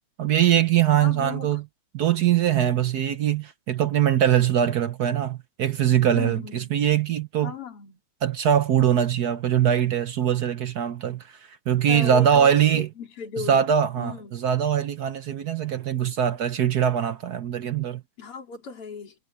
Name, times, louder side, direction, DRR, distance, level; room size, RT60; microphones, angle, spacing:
voice 1, 0.2-1.6 1.9-7.5 8.2-11.4 11.7-12.9 13.5-18.0, right 9 dB, 65° right, 1.0 m, -22 dB
voice 2, 0.9-1.6 6.1-6.7 7.4-8.0 11.9-14.4 18.2-19.2, left 5 dB, 90° left, 3.8 m, -36 dB
omnidirectional pair, 2.4 m